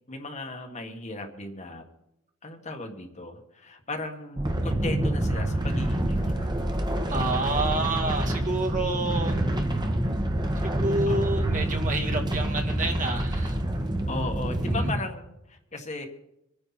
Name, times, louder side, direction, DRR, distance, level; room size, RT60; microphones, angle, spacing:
voice 1, 0.1-1.8 2.4-6.5 11.1-11.4 14.1-16.1, left 2 dB, 35° left, 4 dB, 1.8 m, -36 dB
sound 1, 4.4-14.9, right 1 dB, 20° right, 1.7 m, -27 dB
voice 2, 7.1-9.4 10.6-13.5 14.6-14.9, right 2 dB, 40° right, 1 dB, 2.3 m, -29 dB
26.0 x 10.0 x 4.3 m, 0.84 s
head